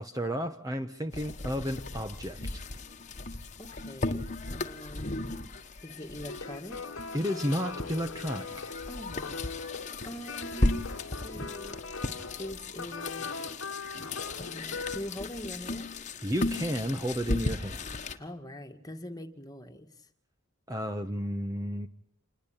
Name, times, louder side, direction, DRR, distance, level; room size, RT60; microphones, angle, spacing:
voice 1, 0.0-2.7 7.1-8.7 16.2-18.2 20.7-21.9, equal, 15° right, 7 dB, 1.2 m, -32 dB
sound 1, 1.1-18.2, left 2 dB, 35° left, 1.5 m, -36 dB
voice 2, 3.6-5.1 5.8-6.8 8.9-9.4 10.0-10.9 11.2-11.8 12.4-13.5 14.4-15.9 18.2-20.1, equal, 15° left, 6 dB, 2.1 m, -43 dB
sound 2, 6.3-15.0, left 4 dB, 70° left, 1.4 m, -40 dB
28.0 x 21.0 x 8.9 m, 0.66 s
head